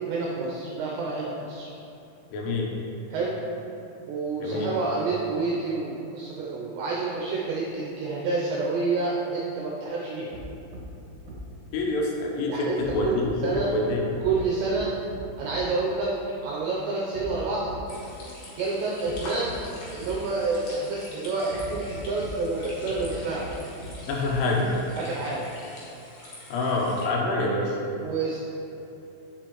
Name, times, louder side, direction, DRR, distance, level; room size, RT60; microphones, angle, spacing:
voice 1, 0.0-1.7 3.1-3.3 4.1-10.3 12.5-12.8 13.0-13.7 14.2-14.9 15.4-16.1 16.4-17.7 18.6-19.5 19.9-23.5 25.0-25.4 28.0-28.4, right 3 dB, 85° right, -4 dB, 2.5 m, -28 dB
voice 2, 2.3-2.7 4.4-4.7 11.7-12.7 12.9-14.1 24.1-24.7 26.5-27.8, left 2 dB, 80° left, -2 dB, 3.3 m, -26 dB
sound 1, 10.3-10.4 10.7-10.8 11.3-11.4 12.8-13.6 14.1-14.4 14.7-14.8 15.1-15.2 15.5-15.6 17.1-17.4 17.7-17.8 19.0-19.1 19.5-19.6 20.0-20.1 21.5-22.3 22.9-23.1 23.4-23.5 23.8-23.9 24.2-24.3, equal, 65° right, 1.8 m, -40 dB
sound 2, 17.9-27.1, left 1 dB, 60° left, 2.7 m, -44 dB
8.6 x 6.7 x 3.0 m, 2.9 s
omnidirectional pair, 5.9 m